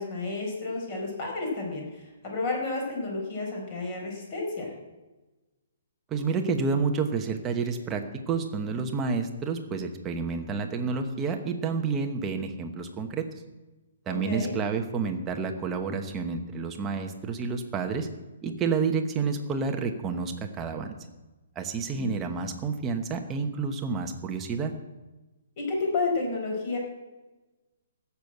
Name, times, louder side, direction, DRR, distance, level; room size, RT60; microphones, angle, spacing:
voice 1, 0.0-1.9 2.2-4.7 14.1-14.5 21.9-22.2 25.6-26.8, left 3 dB, 30° left, 0 dB, 4.5 m, -31 dB
voice 2, 6.1-13.2 14.1-18.1 18.4-20.9 21.6-24.7, right 5 dB, 15° right, 4 dB, 1.0 m, -29 dB
15.5 x 7.0 x 7.9 m, 1.1 s
hypercardioid pair, 170°, 0 cm